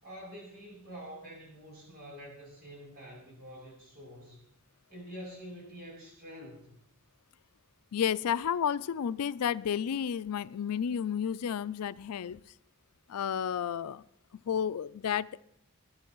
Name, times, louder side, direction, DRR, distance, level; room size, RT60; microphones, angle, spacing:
voice 1, 0.0-4.4 4.9-6.7, equal, 45° right, -2 dB, 7.3 m, -47 dB
voice 2, 7.9-12.4 13.1-14.0 14.3-15.4, left 8 dB, 85° left, 16 dB, 0.4 m, -31 dB
21.0 x 11.5 x 3.1 m, 0.69 s
head